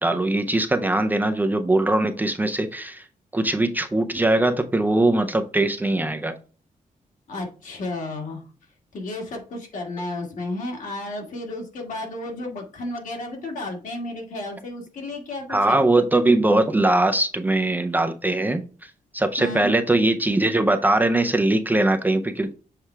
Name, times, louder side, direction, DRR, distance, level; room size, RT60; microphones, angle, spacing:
voice 1, 0.0-3.1 3.3-6.4 15.5-22.5, right 2 dB, 10° right, 6 dB, 0.5 m, -21 dB
voice 2, 7.3-8.4 8.9-15.8 19.4-19.7, left 2 dB, 65° left, 1 dB, 2.1 m, -32 dB
7.3 x 4.6 x 3.3 m, 0.37 s
wide cardioid pair, 170°, 14 cm